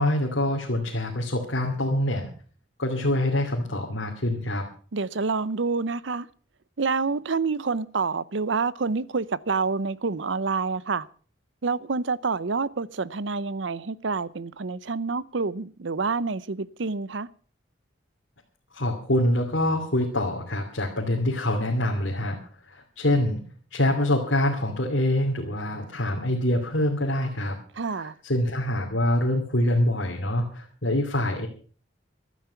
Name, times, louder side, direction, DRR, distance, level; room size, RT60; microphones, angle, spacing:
voice 1, 0.0-2.3 2.8-4.7 18.7-22.4 22.7-23.4 23.7-27.6 27.9-31.5, left 1 dB, 70° left, 2.7 m, -25 dB
voice 2, 4.9-6.3 6.8-11.1 11.6-17.3 27.8-28.1, right 4 dB, 70° right, 0.7 m, -27 dB
15.0 x 12.5 x 5.7 m
head